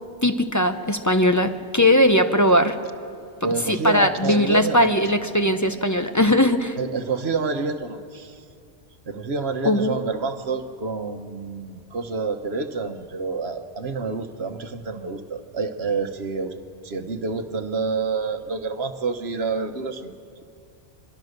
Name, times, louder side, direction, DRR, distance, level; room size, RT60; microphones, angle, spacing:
voice 1, 0.2-2.8 3.7-6.8 9.6-10.0, left 1 dB, 20° left, 8 dB, 0.7 m, -19 dB
voice 2, 3.4-4.9 6.8-8.4 9.1-16.5 16.8-20.1, right 4 dB, 65° right, 8 dB, 1.3 m, -28 dB
23.5 x 23.5 x 6.6 m, 2.5 s
omnidirectional pair, 1.2 m